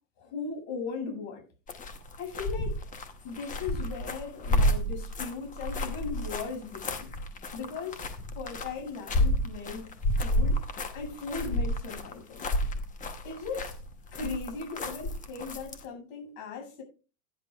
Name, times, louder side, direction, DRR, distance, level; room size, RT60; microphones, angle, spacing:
voice 1, 0.2-1.4 2.2-2.8 3.2-7.1 7.5-8.0 8.3-10.6 10.9-12.5 13.2-13.8 14.1-16.8, left 4 dB, 55° left, 7.5 m, -38 dB
sound 1, 1.7-15.8, left 1 dB, 15° left, 1.1 m, -31 dB
16.0 x 10.5 x 2.5 m
supercardioid pair, 150°, 49 cm